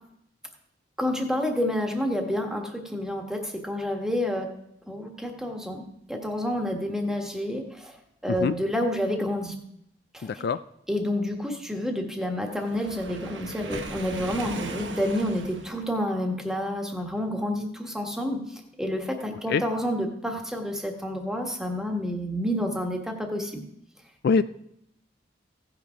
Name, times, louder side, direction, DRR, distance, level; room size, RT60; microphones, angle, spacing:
voice 1, 1.0-4.5 4.9-8.0 8.2-9.5 10.1-10.5 10.9-23.6, left 1 dB, 5° right, 2 dB, 1.4 m, -29 dB
voice 2, 10.2-10.6 19.5-19.6 24.2-24.4, left 5 dB, 60° left, 13 dB, 0.3 m, -24 dB
Waves surf, 12.5-15.8, right 2 dB, 80° right, 1.1 m, -38 dB
16.0 x 6.0 x 5.1 m, 0.75 s
head